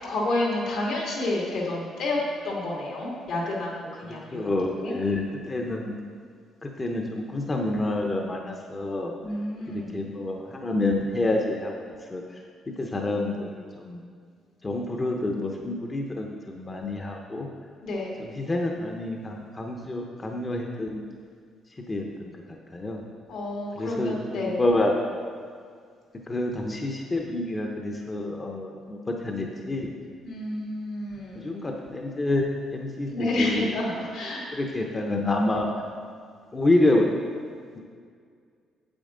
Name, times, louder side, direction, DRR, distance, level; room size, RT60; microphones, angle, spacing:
voice 1, 0.0-2.2 2.4-4.4 4.8-4.9 9.2-10.0 17.8-18.1 23.3-24.6 30.2-31.5 33.1-34.4, left 2 dB, 80° left, -3 dB, 2.3 m, -29 dB
voice 2, 4.1-6.0 6.6-9.1 9.7-11.7 12.1-12.2 12.8-14.0 14.6-17.5 18.2-21.0 21.9-22.4 22.7-23.0 23.8-24.9 26.3-29.9 31.3-32.4 32.7-33.7 34.5-35.7 36.5-37.1, left 2 dB, 25° left, 1 dB, 0.7 m, -28 dB
8.8 x 7.9 x 3.8 m, 2.1 s
cardioid pair, 115°, 0 cm